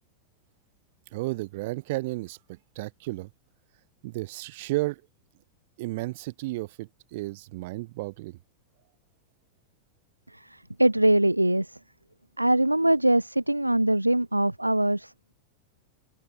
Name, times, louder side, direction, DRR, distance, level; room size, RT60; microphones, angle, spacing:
voice 1, 1.1-3.3 4.0-5.0 5.8-8.4, right 20 dB, 50° right, 5.9 m, -33 dB
voice 2, 10.3-11.8 12.4-15.3, right 1 dB, 85° right, 2.2 m, -23 dB
open air
figure-of-eight pair, 90°, 0 cm